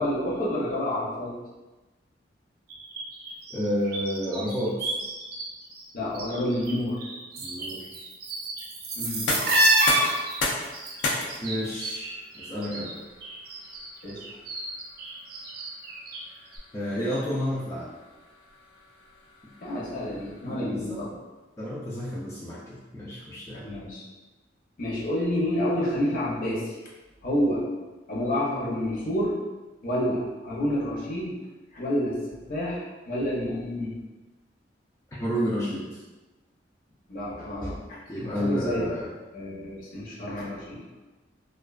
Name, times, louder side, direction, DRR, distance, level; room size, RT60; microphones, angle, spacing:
voice 1, 0.0-1.3 5.9-7.0 9.0-9.4 14.0-14.2 19.6-21.1 23.6-24.1 24.8-26.7 27.2-27.6 28.1-29.4 29.8-31.4 31.7-32.2 32.5-34.0 37.1-38.9 39.3-40.8, left 1 dB, 50° left, -5 dB, 0.6 m, -29 dB
sound 1, 2.7-5.4 5.7-6.7 7.0-12.9 13.2-16.2 16.5-16.6, right 1 dB, 55° right, 0.4 m, -29 dB
voice 2, 3.5-4.9 7.4-7.9 11.4-12.1 12.3-13.0 16.7-17.9 20.4-21.0 21.6-23.7 35.2-36.0 38.1-39.1, equal, 15° left, -8 dB, 0.3 m, -30 dB
sound 2, 9.0-20.8, left 2 dB, 90° left, 0.5 m, -36 dB
2.4 x 2.2 x 2.3 m, 1.2 s
head